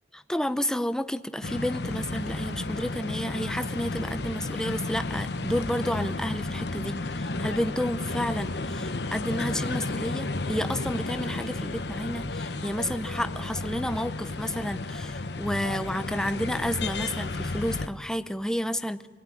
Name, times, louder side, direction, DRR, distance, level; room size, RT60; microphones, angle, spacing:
voice 1, 0.1-19.1, equal, 5° left, 11 dB, 0.8 m, -31 dB
sound 1, 1.4-17.9, left 2 dB, 65° left, 1.0 m, -32 dB
28.0 x 19.0 x 9.9 m, 1.5 s
head